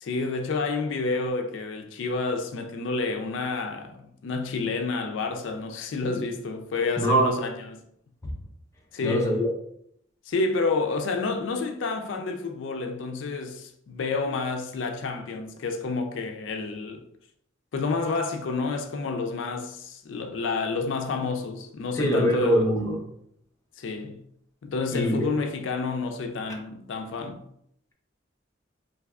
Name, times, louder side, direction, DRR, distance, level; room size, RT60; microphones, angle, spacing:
voice 1, 0.0-7.8 8.9-9.3 10.3-17.0 17.7-22.7 23.8-24.2 24.6-27.4, left 3 dB, 80° left, 0.4 m, -29 dB
voice 2, 7.0-7.4 9.0-9.5 22.0-23.0 24.9-25.3, right 1 dB, 15° left, 0.5 m, -23 dB
3.4 x 2.6 x 2.3 m
head